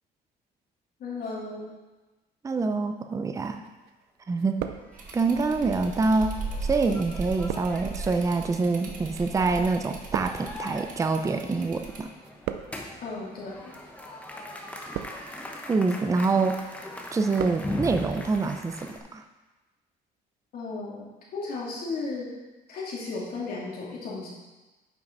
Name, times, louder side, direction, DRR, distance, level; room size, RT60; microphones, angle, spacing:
voice 1, 1.0-1.7 13.0-13.7 20.5-22.3 22.7-24.3, left 3 dB, 60° left, -5 dB, 2.8 m, -35 dB
voice 2, 2.4-3.6 4.3-4.6 5.1-6.3 6.6-12.1 15.7-16.6 17.1-19.2, right 3 dB, 20° right, 7 dB, 0.5 m, -26 dB
sound 1, 3.4-4.0 4.3-5.4 6.1-11.7 12.0-13.0 13.7-14.0 14.6-15.5 15.9-16.3 16.7-17.7 17.9-18.0, right 11 dB, 80° right, 0.5 m, -38 dB
sound 2, 4.8-19.0, left 1 dB, 10° left, 1.1 m, -41 dB
sound 3, 4.9-12.0, right 3 dB, 50° right, 1.3 m, -38 dB
9.2 x 5.6 x 4.0 m, 1.2 s
cardioid pair, 110°, 17 cm